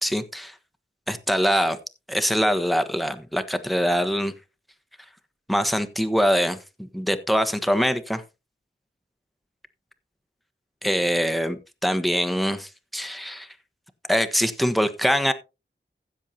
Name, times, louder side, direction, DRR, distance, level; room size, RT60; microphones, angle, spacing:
voice 1, 0.0-0.5 1.1-1.8 2.1-4.3 5.5-8.2 10.8-13.5 14.1-15.3, equal, ahead, 8 dB, 1.3 m, -23 dB
15.5 x 7.4 x 2.9 m, 0.28 s
wide cardioid pair, 40°, 21 cm